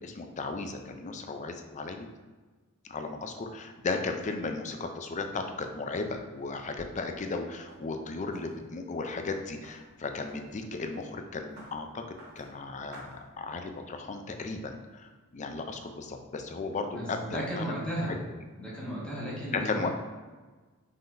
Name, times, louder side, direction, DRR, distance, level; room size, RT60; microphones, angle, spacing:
voice 1, 0.0-2.1 2.8-12.0 12.4-17.8 19.5-19.9, left 3 dB, 35° left, 5 dB, 0.4 m, -35 dB
sound 1, 6.3-13.8, right 1 dB, 50° right, 1.2 m, -55 dB
voice 2, 16.9-18.2 18.6-19.9, equal, 5° left, -7 dB, 1.4 m, -34 dB
5.5 x 3.7 x 2.6 m, 1.3 s
head